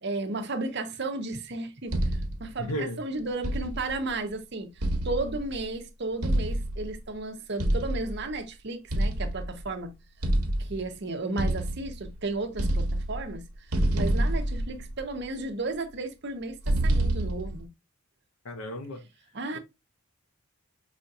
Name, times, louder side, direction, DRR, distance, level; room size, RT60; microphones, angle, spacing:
voice 1, 0.0-2.0 2.4-4.7 5.0-9.9 10.5-13.4 13.9-17.7 19.3-19.6, right 2 dB, 50° right, 0.7 m, -34 dB
sound 1, 1.9-2.5 3.4-4.0 4.8-5.6 6.2-7.0 7.6-8.2 8.9-9.7 10.2-10.9 11.4-12.2 12.5-13.4 13.7-15.2 16.6-17.6, right 1 dB, 90° right, 0.9 m, -27 dB
voice 2, 2.6-3.0 18.4-19.0 19.5-19.6, left 1 dB, 90° left, 0.9 m, -34 dB
4.9 x 2.7 x 2.4 m
head